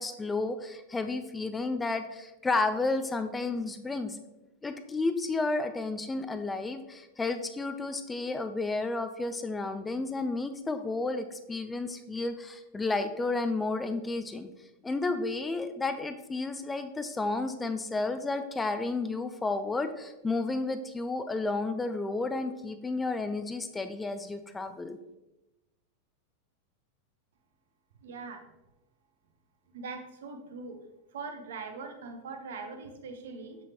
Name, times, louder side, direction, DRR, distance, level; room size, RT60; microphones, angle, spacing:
voice 1, 0.0-4.2 4.6-14.5 14.8-25.0, left 3 dB, 10° left, 9 dB, 0.4 m, -32 dB
voice 2, 28.0-28.4 29.7-30.8 31.1-33.6, right 4 dB, 60° right, 5 dB, 0.9 m, -41 dB
6.8 x 6.0 x 2.9 m, 0.96 s
figure-of-eight pair, 90°, 0 cm